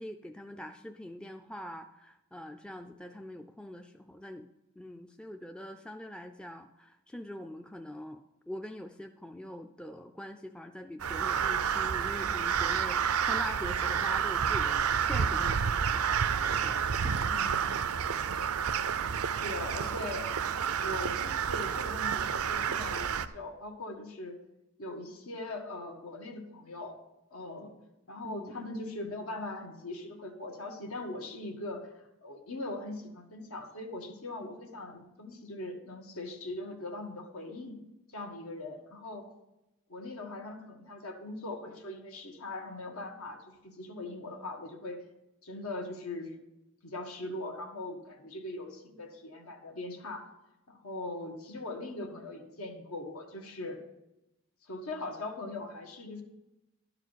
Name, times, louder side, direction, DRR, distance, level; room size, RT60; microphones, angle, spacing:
voice 1, 0.0-4.5 4.8-17.3 28.2-28.5, left 1 dB, 5° left, 5 dB, 0.3 m, -43 dB
Crow, 11.0-23.3, right 7 dB, 90° right, 0.5 m, -30 dB
voice 2, 17.3-17.7 19.3-20.3 20.8-24.4 24.8-27.0 27.3-27.7 28.1-31.9 32.2-37.8 38.1-39.3 39.9-45.0 45.4-46.4 46.8-50.3 50.7-53.8 54.6-56.2, left 2 dB, 85° left, 2 dB, 1.7 m, -40 dB
12.0 x 4.9 x 8.1 m, 0.93 s
head